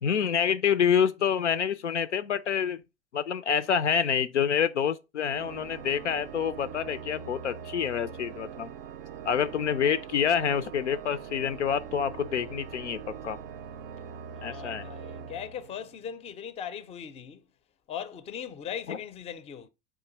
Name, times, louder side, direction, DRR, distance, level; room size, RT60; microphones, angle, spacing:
voice 1, 0.0-2.8 3.1-8.7 9.2-13.4 14.4-14.9 18.9-19.0, left 7 dB, 85° left, 0.5 m, -27 dB
Organ, 5.2-16.2, right 7 dB, 55° right, 0.5 m, -42 dB
voice 2, 14.3-17.4 17.9-19.7, left 8 dB, 20° left, 0.5 m, -39 dB
4.8 x 2.6 x 3.9 m
figure-of-eight pair, 80°, 34 cm